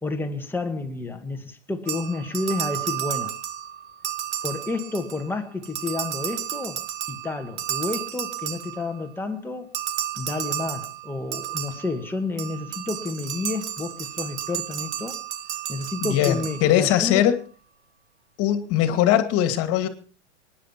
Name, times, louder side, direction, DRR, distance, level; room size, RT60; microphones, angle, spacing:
voice 1, 0.0-3.4 4.4-9.7 10.2-15.2 15.7-17.2, left 3 dB, 5° left, 2.1 m, -30 dB
sound 1, 1.9-5.3 5.6-9.1 9.7-17.0, right 12 dB, 70° right, 1.6 m, -32 dB
voice 2, 16.0-17.4 18.4-19.9, left 11 dB, 40° left, 2.4 m, -21 dB
24.0 x 10.5 x 4.5 m
hypercardioid pair, 110°, 35 cm